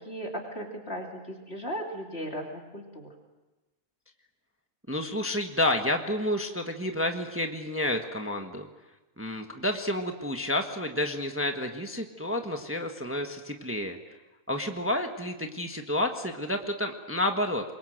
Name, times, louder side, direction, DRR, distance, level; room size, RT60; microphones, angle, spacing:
voice 1, 0.0-3.1, equal, 45° left, 1 dB, 3.2 m, -37 dB
voice 2, 4.9-8.7 9.2-14.0 14.5-17.6, left 1 dB, 10° right, 4 dB, 1.4 m, -30 dB
26.0 x 22.0 x 7.8 m, 1.1 s
omnidirectional pair, 1.5 m